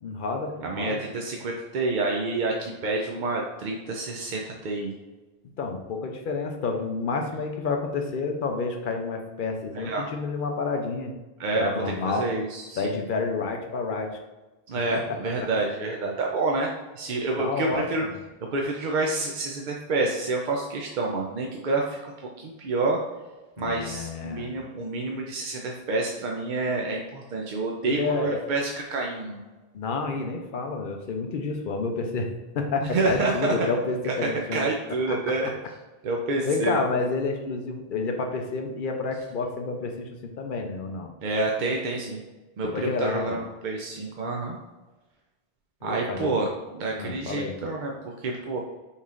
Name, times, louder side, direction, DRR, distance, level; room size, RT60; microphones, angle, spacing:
voice 1, 0.0-1.0 5.6-11.1 11.5-12.3 12.8-14.1 14.9-15.5 17.4-18.1 23.6-24.5 27.8-28.4 29.7-34.7 35.1-35.5 36.5-41.1 42.6-43.4 45.8-46.4 46.9-47.6, left 4 dB, 60° left, 4 dB, 0.7 m, -29 dB
voice 2, 0.6-4.9 9.7-10.0 11.4-13.0 14.7-18.0 18.5-23.0 23.6-29.4 32.9-33.5 34.2-35.5 36.0-36.8 41.2-42.2 42.6-44.6 45.8-48.6, right 3 dB, 60° right, 0 dB, 0.6 m, -28 dB
5.5 x 3.1 x 2.4 m, 1.2 s
omnidirectional pair, 1.0 m